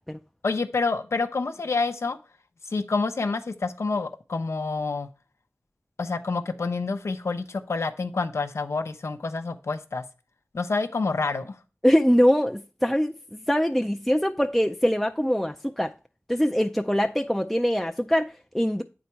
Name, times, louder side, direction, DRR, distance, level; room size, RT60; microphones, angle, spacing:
voice 1, 0.4-2.2 2.7-5.1 6.0-10.1 10.5-11.6, left 4 dB, 85° left, 0.6 m, -28 dB
voice 2, 11.8-15.9 16.3-18.8, equal, 5° left, 0.4 m, -23 dB
8.5 x 4.0 x 4.5 m
wide cardioid pair, 65°, 5 cm